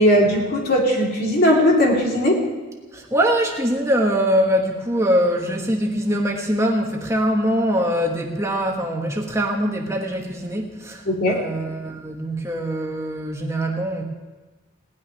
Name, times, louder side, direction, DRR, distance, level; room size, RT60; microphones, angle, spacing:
voice 1, 0.0-2.4 11.0-11.4, equal, 50° left, -1 dB, 3.0 m, -18 dB
voice 2, 2.9-11.0 11.3-14.0, equal, 15° right, 1 dB, 1.4 m, -23 dB
18.0 x 6.4 x 9.9 m, 1.3 s
head